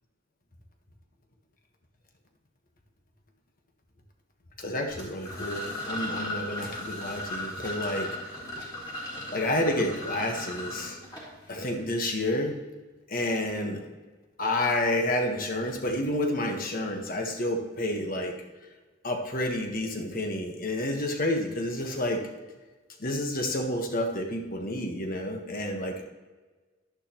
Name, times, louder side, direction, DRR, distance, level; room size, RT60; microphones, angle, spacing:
voice 1, 4.6-8.1 9.3-11.0 11.5-12.5 13.1-13.8 14.4-18.3 19.0-22.2 23.0-26.0, left 1 dB, 45° left, 3 dB, 1.3 m, -29 dB
sound 1, 4.9-11.8, left 1 dB, 20° left, 3.4 m, -37 dB
11.5 x 11.0 x 3.0 m, 1.3 s
head